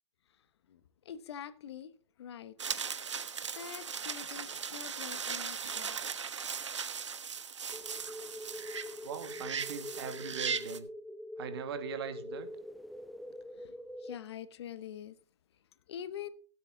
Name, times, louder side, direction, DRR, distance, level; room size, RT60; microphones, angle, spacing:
voice 1, 0.7-2.6 3.5-6.0 13.5-15.2 15.9-16.3, left 9 dB, 65° left, 1.1 m, -45 dB
sound 1, 2.6-10.8, right 6 dB, 85° right, 1.2 m, -38 dB
sound 2, 7.7-14.2, left 1 dB, ahead, 0.4 m, -44 dB
voice 2, 9.0-10.9 11.4-12.5, right 7 dB, 60° right, 2.0 m, -41 dB
17.0 x 8.3 x 3.8 m
hypercardioid pair, 125°, 15 cm